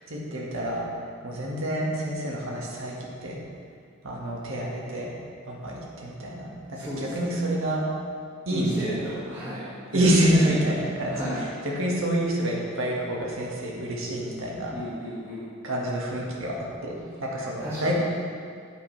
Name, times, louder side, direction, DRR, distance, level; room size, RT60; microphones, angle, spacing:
voice 1, 0.1-0.8 1.2-3.4 4.0-5.1 5.5-7.9 8.5-9.1 9.9-14.7 15.6-17.9, right 1 dB, 70° right, -3 dB, 1.8 m, -27 dB
voice 2, 6.7-7.4 8.5-10.4 11.1-11.4 14.7-15.4 17.6-17.9, equal, 10° right, -13 dB, 2.0 m, -34 dB
9.5 x 8.2 x 3.4 m, 2.3 s
head